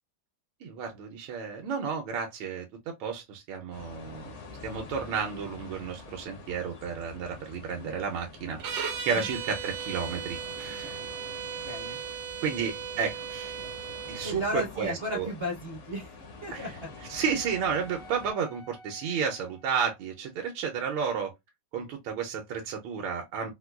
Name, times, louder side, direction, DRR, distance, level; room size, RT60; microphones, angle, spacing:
voice 1, 0.6-4.3 4.6-11.0 12.4-13.6 14.1-15.3 16.5-16.7 17.1-21.3 21.7-23.5, right 6 dB, 85° right, 1.4 m, -32 dB
sound 1, 3.7-18.3, left 4 dB, 60° left, 0.8 m, -47 dB
sound 2, 8.6-14.4, right 7 dB, 70° right, 1.1 m, -37 dB
voice 2, 11.6-12.0 14.2-16.2 16.4-16.7, equal, 55° right, 0.7 m, -34 dB
Wind instrument woodwind instrument, 15.9-20.1, equal, 80° left, 1.9 m, -51 dB
4.2 x 2.2 x 2.2 m
omnidirectional pair, 2.2 m